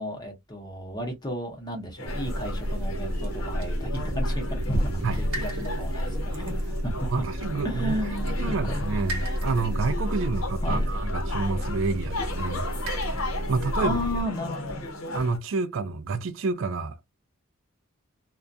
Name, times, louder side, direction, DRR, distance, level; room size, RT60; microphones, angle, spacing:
voice 1, 0.0-7.1 7.6-9.0 10.6-10.9 13.8-14.7, equal, 20° left, 0.7 m, -34 dB
sound 1, 2.0-15.4, left 1 dB, 75° left, 0.7 m, -35 dB
sound 2, 2.1-14.2, equal, 75° right, 0.7 m, -30 dB
voice 2, 7.1-7.9 8.4-12.7 13.5-14.0 15.1-17.0, right 4 dB, 60° right, 0.3 m, -29 dB
2.4 x 2.1 x 2.5 m
head